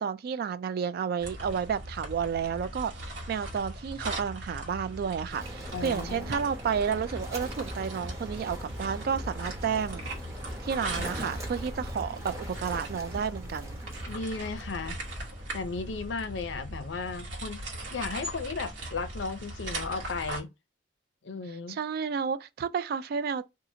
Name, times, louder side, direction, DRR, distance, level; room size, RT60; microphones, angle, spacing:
voice 1, 0.0-2.9 3.3-10.0 10.6-13.8 21.5-23.5, right 7 dB, 55° right, 0.3 m, -31 dB
sound 1, 1.2-20.4, right 1 dB, 85° right, 1.2 m, -39 dB
sound 2, 5.3-16.1, equal, 15° right, 0.7 m, -41 dB
voice 2, 5.7-6.4 11.0-11.3 14.1-15.0 15.5-17.6 17.9-20.5 21.2-21.8, left 4 dB, 85° left, 0.6 m, -35 dB
2.7 x 2.4 x 2.7 m
head